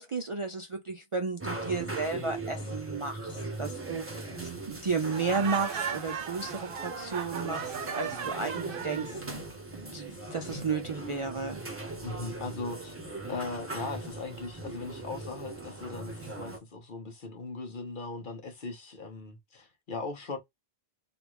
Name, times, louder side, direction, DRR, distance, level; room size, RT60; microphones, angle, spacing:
voice 1, 0.0-9.5 9.7-11.6, right 4 dB, 45° right, 0.4 m, -33 dB
sound 1, 1.4-16.6, right 2 dB, 15° right, 0.8 m, -40 dB
Laughter, 5.1-9.2, right 7 dB, 60° right, 0.8 m, -37 dB
voice 2, 12.0-12.9 13.3-20.4, left 3 dB, 50° left, 1.1 m, -39 dB
3.5 x 2.4 x 3.0 m
omnidirectional pair, 1.1 m